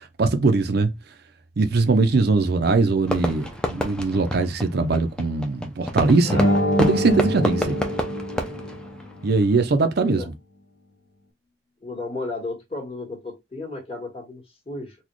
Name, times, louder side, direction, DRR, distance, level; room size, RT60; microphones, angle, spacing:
voice 1, 0.2-0.9 1.6-6.4 6.8-7.8 9.2-10.2, right 3 dB, 55° right, 0.5 m, -21 dB
Fireworks, 3.1-9.6, equal, 5° left, 0.5 m, -30 dB
sound 1, 6.2-9.0, equal, 85° left, 1.0 m, -24 dB
sound 2, 7.1-9.3, equal, 60° left, 1.0 m, -39 dB
voice 2, 10.0-10.3 11.8-15.0, left 2 dB, 30° left, 1.5 m, -33 dB
4.0 x 2.3 x 3.1 m
head